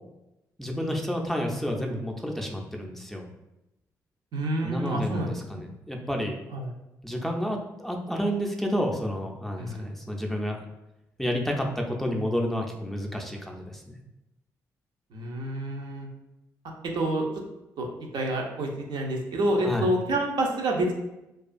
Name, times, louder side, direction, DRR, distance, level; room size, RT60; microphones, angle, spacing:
voice 1, 0.6-3.3 4.6-6.4 7.0-10.6 11.2-13.8 19.6-19.9, equal, 5° left, 0 dB, 0.4 m, -30 dB
voice 2, 4.3-5.7 6.5-6.7 9.6-9.9 15.1-16.1 16.9-17.2 17.8-17.9 18.1-20.9, right 1 dB, 60° right, 0 dB, 0.5 m, -28 dB
2.3 x 2.3 x 2.4 m, 0.93 s
hypercardioid pair, 45°, 8 cm